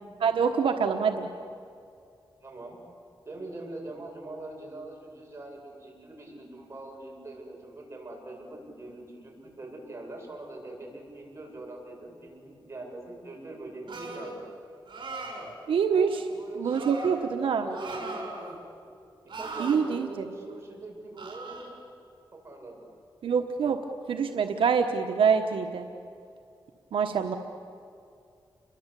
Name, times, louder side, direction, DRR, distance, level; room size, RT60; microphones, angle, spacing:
voice 1, 0.2-1.3 15.7-16.2 16.6-17.7 19.6-20.2 23.2-23.8 24.1-25.9 26.9-27.4, right 6 dB, 90° right, 5 dB, 1.3 m, -25 dB
voice 2, 2.4-2.8 3.2-14.5 15.9-16.8 17.4-18.2 19.4-21.7 22.3-22.9, right 2 dB, 30° right, 0 dB, 7.7 m, -42 dB
sound 1, 13.9-14.4 14.9-15.5 16.6-17.2 17.7-18.6 19.3-19.8 21.2-21.7, right 2 dB, 60° right, 7.1 m, -38 dB
30.0 x 23.0 x 8.4 m, 2.4 s
wide cardioid pair, 100°, 9 cm